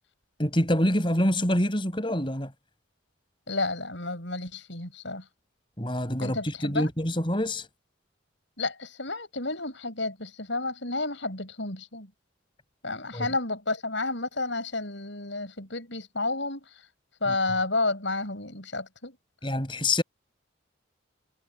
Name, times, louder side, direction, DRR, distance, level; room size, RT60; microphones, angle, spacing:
voice 1, 0.4-2.5 5.8-7.7 13.1-13.3 19.4-20.0, left 1 dB, 25° left, 6.0 m, -26 dB
voice 2, 3.5-5.3 6.2-6.9 8.6-12.1 12.8-16.9 17.2-19.2, left 2 dB, 70° left, 7.2 m, -31 dB
head